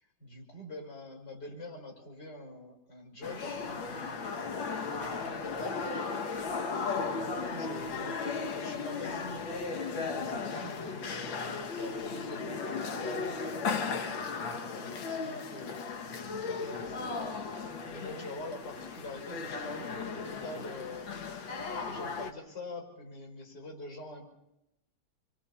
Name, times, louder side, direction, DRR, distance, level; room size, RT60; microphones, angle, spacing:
voice 1, 0.2-6.2 6.5-9.5 9.9-24.3, left 2 dB, 50° left, 1 dB, 5.7 m, -46 dB
sound 1, 3.2-22.3, left 4 dB, 70° left, 2.0 m, -36 dB
27.0 x 24.5 x 4.3 m, 0.88 s
omnidirectional pair, 2.2 m